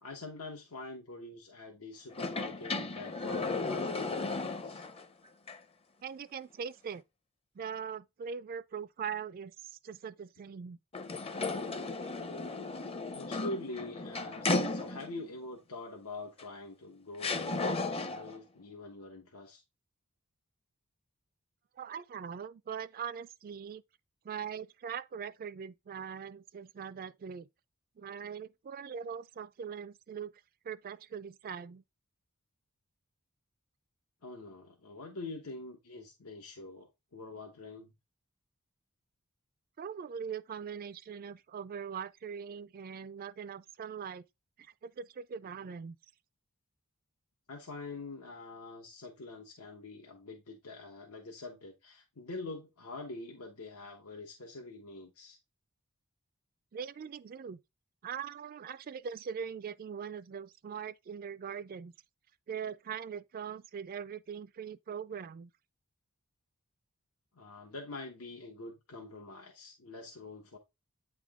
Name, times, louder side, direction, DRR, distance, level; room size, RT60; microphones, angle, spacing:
voice 1, 0.0-4.8 13.1-19.6 34.2-37.9 47.5-55.4 67.3-70.6, left 2 dB, 90° left, 1.2 m, -45 dB
sound 1, 2.1-5.0 5.5-5.6 10.9-15.3 16.4-16.5 17.2-18.4, left 3 dB, 25° left, 0.6 m, -35 dB
voice 2, 6.0-7.0 7.6-10.8 21.8-23.8 24.2-27.5 28.0-30.3 30.6-31.8 39.8-44.2 44.6-46.0 56.7-57.6 58.0-61.9 62.5-65.5, right 7 dB, 40° right, 0.3 m, -41 dB
8.9 x 3.6 x 3.5 m
head